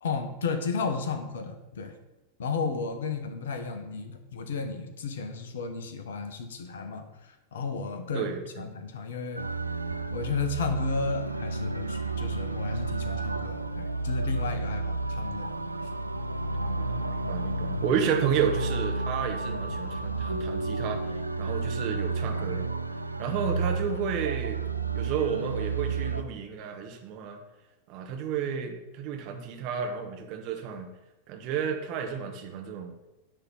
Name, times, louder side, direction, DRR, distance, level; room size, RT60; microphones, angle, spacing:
voice 1, 0.0-1.9 2.4-8.3 8.6-9.4 10.1-15.5 15.8-15.9, left 4 dB, 60° left, 8 dB, 1.1 m, -33 dB
voice 2, 8.1-8.6 16.6-21.1 21.4-22.7 23.2-24.6 24.9-27.4 27.9-30.9 31.3-32.9, right 7 dB, 40° right, 4 dB, 1.3 m, -31 dB
sound 1, 9.4-26.2, right 3 dB, 85° right, 0.5 m, -31 dB
10.0 x 3.8 x 7.0 m, 0.99 s
figure-of-eight pair, 90°, 0 cm